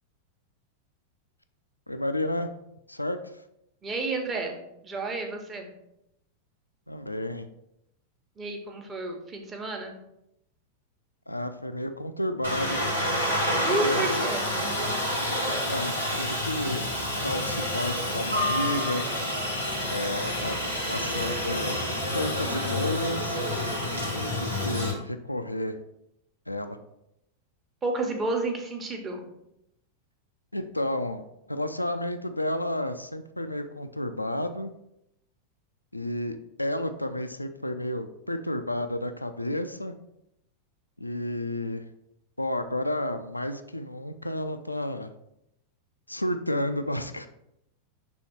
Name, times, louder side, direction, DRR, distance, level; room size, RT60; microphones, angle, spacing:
voice 1, 1.9-2.5 2.9-3.4 6.9-7.5 11.3-12.8 13.7-14.2 15.7-16.9 17.2-19.1 19.9-20.6 20.9-21.8 22.1-23.4 24.3-25.8 26.5-26.8 30.5-31.2 31.5-34.7 35.9-39.9 41.0-41.8 42.4-45.1 46.1-47.3, left 1 dB, 85° left, 8 dB, 0.3 m, -31 dB
voice 2, 3.8-5.7 8.4-10.0 13.6-14.5 27.8-29.2, right 2 dB, 20° right, 3 dB, 1.0 m, -31 dB
Aircraft, 12.4-24.9, left 1 dB, 80° right, 1.4 m, -28 dB
6.2 x 3.4 x 4.4 m, 0.82 s
figure-of-eight pair, 90°, 0 cm